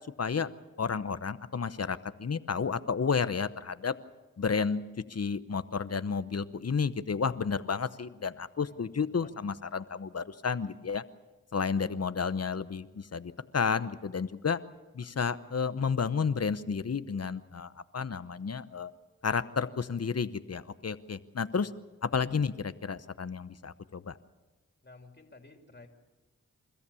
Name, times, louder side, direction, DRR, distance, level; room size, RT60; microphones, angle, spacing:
voice 1, 0.2-0.5 0.8-3.9 4.4-4.8 5.1-11.0 11.5-14.6 14.9-18.9 19.2-21.7 22.0-24.2, left 5 dB, 55° left, 14 dB, 0.9 m, -31 dB
voice 2, 24.8-25.9, left 3 dB, 35° left, 3 dB, 3.0 m, -53 dB
29.0 x 14.0 x 7.0 m, 1.2 s
cardioid pair, 45°, 30 cm